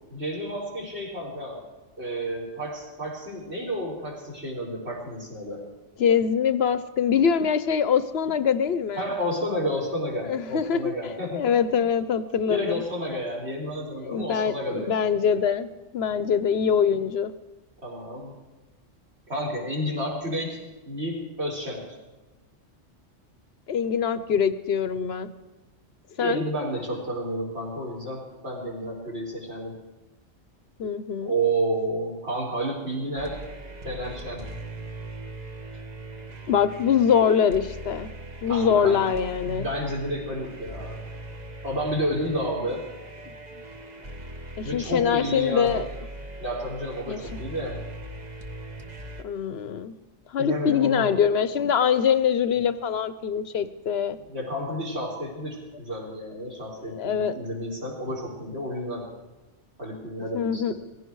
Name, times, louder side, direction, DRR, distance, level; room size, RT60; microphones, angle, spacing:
voice 1, 0.1-1.6 2.0-5.6 9.0-11.9 12.5-15.1 17.8-18.4 19.3-20.6 20.9-22.0 26.2-29.8 31.2-33.4 33.8-34.5 38.5-39.1 39.4-41.0 41.6-42.9 44.6-45.8 46.4-47.8 50.4-51.1 54.2-59.1 59.8-60.7, equal, 60° right, -3 dB, 4.3 m, -31 dB
voice 2, 6.0-9.1 10.3-10.9 11.4-12.8 14.0-17.3 23.7-25.3 26.2-26.4 30.8-31.3 36.5-38.1 38.4-39.7 44.6-45.9 47.1-47.2 49.2-49.9 50.3-54.2 56.8-57.3 60.3-60.7, left 7 dB, 65° left, 13 dB, 0.9 m, -23 dB
sound 1, 33.2-49.2, right 1 dB, 35° right, 1.2 m, -40 dB
18.5 x 15.5 x 4.7 m, 1.1 s
omnidirectional pair, 1.2 m